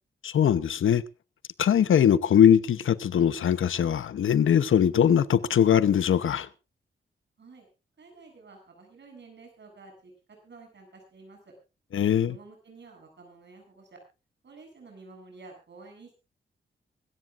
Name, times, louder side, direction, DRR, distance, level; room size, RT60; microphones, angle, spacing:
voice 1, 0.2-1.0 1.6-6.5 11.9-12.4, left 9 dB, 85° left, 0.9 m, -21 dB
voice 2, 8.0-10.1 10.4-11.4 12.2-14.0 14.4-16.1, right 3 dB, 60° right, 7.9 m, -50 dB
24.5 x 13.5 x 2.5 m
cardioid pair, 90°, 20 cm